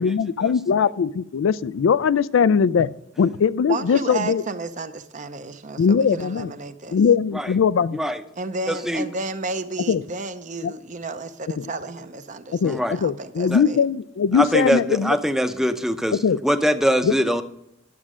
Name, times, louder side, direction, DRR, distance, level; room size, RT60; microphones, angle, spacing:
voice 1, 0.0-2.9 3.2-4.4 5.8-6.5 6.9-8.0 9.9-10.0 10.6-10.7 11.6-11.7 12.5-15.2 16.2-16.4 17.0-17.1, left 6 dB, 90° left, 17 dB, 0.4 m, -20 dB
voice 2, 3.7-7.0 8.4-13.8, right 3 dB, 40° right, 10 dB, 0.6 m, -32 dB
voice 3, 7.9-8.2 8.7-9.0 12.6-13.0 13.5-13.6 14.3-17.4, equal, ahead, 9 dB, 0.6 m, -23 dB
11.0 x 7.3 x 4.9 m, 0.80 s
head